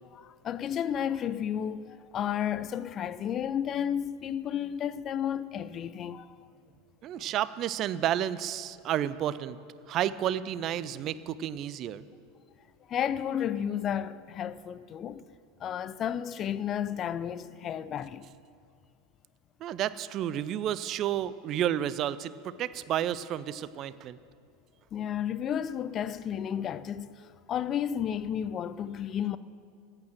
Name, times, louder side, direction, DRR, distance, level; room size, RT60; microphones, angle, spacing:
voice 1, 0.1-6.3 12.9-15.2 15.6-18.3 24.9-29.4, left 9 dB, 35° left, 0.4 m, -32 dB
voice 2, 7.0-9.6 9.9-12.0 19.6-24.2, right 11 dB, 40° right, 0.5 m, -31 dB
15.0 x 8.9 x 7.6 m
figure-of-eight pair, 80°, 0 cm